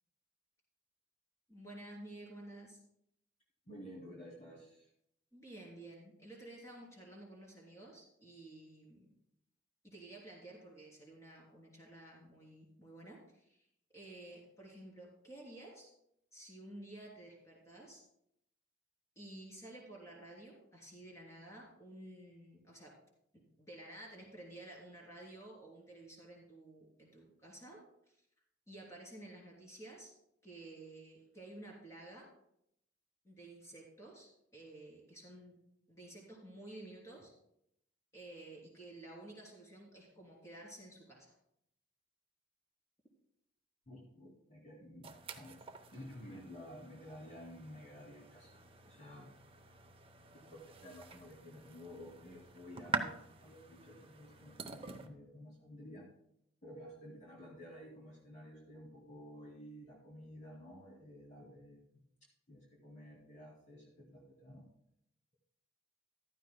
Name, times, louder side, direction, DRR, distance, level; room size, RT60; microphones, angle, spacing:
voice 1, 1.5-2.8 5.3-9.1 9.8-13.7 13.9-15.9 16.3-18.0 19.1-22.9 23.3-28.2 28.7-30.1 30.4-32.3 33.2-35.6 35.9-37.3 38.1-41.3, right 1 dB, 15° left, -2 dB, 3.4 m, -52 dB
voice 2, 3.7-4.9 43.9-45.1 45.3-48.6 48.8-49.3 50.3-56.1 56.6-61.8 62.5-64.6, equal, 40° left, -3 dB, 2.4 m, -52 dB
sound 1, 45.0-55.1, right 4 dB, 30° right, 0.8 m, -46 dB
14.5 x 12.5 x 2.2 m, 0.76 s
head